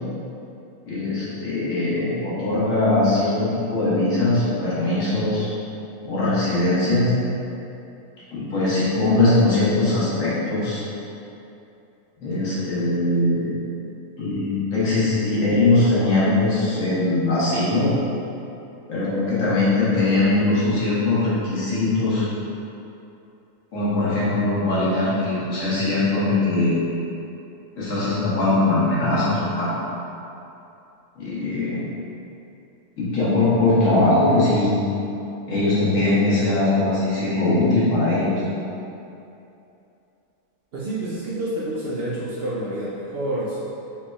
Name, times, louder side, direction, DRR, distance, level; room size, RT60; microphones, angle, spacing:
voice 1, 0.8-5.5 6.0-7.1 8.3-10.8 12.2-13.5 14.2-17.9 18.9-22.3 23.7-26.8 27.8-29.7 31.2-31.8 33.0-34.8 35.5-38.4, left 2 dB, 75° left, -10 dB, 1.5 m, -21 dB
voice 2, 40.7-43.6, right 1 dB, 60° right, -7 dB, 0.7 m, -28 dB
4.3 x 3.5 x 2.3 m, 2.8 s
omnidirectional pair, 1.4 m